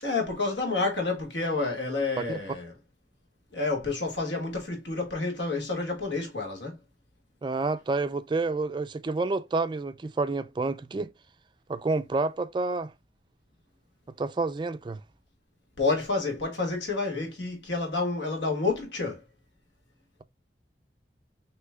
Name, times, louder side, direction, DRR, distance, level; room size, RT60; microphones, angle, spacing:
voice 1, 0.0-2.7 3.5-6.7 15.8-19.2, left 3 dB, 85° left, 1.8 m, -29 dB
voice 2, 7.4-11.1 11.7-12.9 14.2-15.0, right 3 dB, 25° right, 0.3 m, -29 dB
6.1 x 3.1 x 2.2 m
head